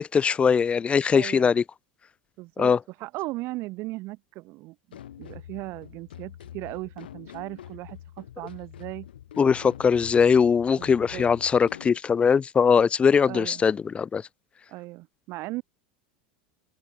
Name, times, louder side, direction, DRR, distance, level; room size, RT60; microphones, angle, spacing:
voice 1, 0.0-1.6 2.6-2.8 9.4-14.3, left 6 dB, 25° left, 0.6 m, -21 dB
voice 2, 1.1-1.5 2.4-2.7 3.0-9.1 10.8-11.2 13.3-13.6 14.7-15.6, right 21 dB, 55° right, 2.0 m, -37 dB
sound 1, 4.9-12.0, left 11 dB, 90° left, 7.6 m, -45 dB
hypercardioid pair, 100°, 5 cm